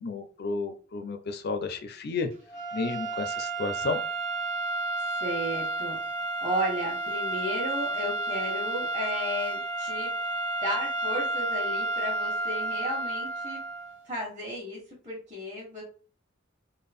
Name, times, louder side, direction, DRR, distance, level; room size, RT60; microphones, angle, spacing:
voice 1, 0.0-2.3 2.7-4.0, left 3 dB, 55° left, 7 dB, 0.5 m, -32 dB
sound 1, 2.5-14.0, right 2 dB, 75° right, 1.1 m, -31 dB
voice 2, 5.2-6.0 6.4-10.1 10.6-13.6 14.0-15.8, equal, 30° right, -6 dB, 1.3 m, -34 dB
3.7 x 2.1 x 3.5 m, 0.38 s
head